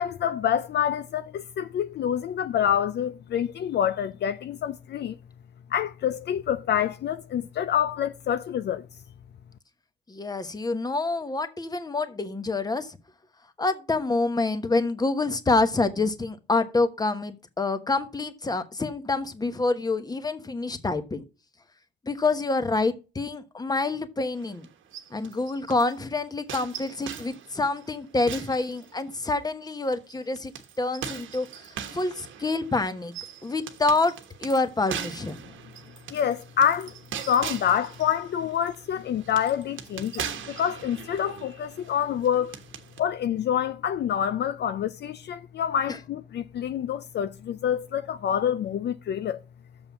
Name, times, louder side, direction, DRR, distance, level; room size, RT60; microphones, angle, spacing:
voice 1, 0.0-5.2 5.7-8.8 36.1-36.9 37.2-42.6 43.0-49.4, left 9 dB, 60° left, 0.5 m, -27 dB
voice 2, 10.1-13.0 13.6-21.2 22.1-24.7 25.1-30.5 30.8-31.5 31.9-33.1 33.4-34.1 34.4-35.4 45.9-46.0, left 3 dB, 20° left, 1.2 m, -27 dB
sound 1, 24.4-26.0 26.5-29.4 29.9-43.0, right 8 dB, 75° right, 1.2 m, -40 dB
7.1 x 5.5 x 7.1 m
cardioid pair, 90°, 20 cm